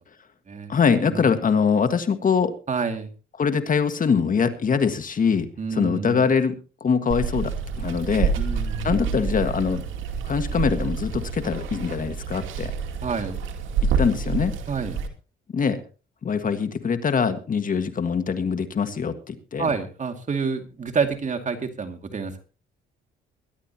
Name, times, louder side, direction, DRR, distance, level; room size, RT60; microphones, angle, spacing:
voice 1, 0.7-2.5 3.4-8.3 8.8-9.8 10.2-12.7 14.0-14.5 15.5-15.8 16.2-19.7, left 6 dB, 45° left, 9 dB, 1.6 m, -23 dB
voice 2, 2.7-3.1 5.6-6.2 8.4-9.0 13.0-13.4 14.7-15.0 19.6-22.4, right 5 dB, 40° right, 6 dB, 2.3 m, -28 dB
Water, 7.1-15.1, right 5 dB, 80° right, 2.3 m, -28 dB
23.0 x 11.5 x 2.9 m, 0.34 s
cardioid pair, 90°, 20 cm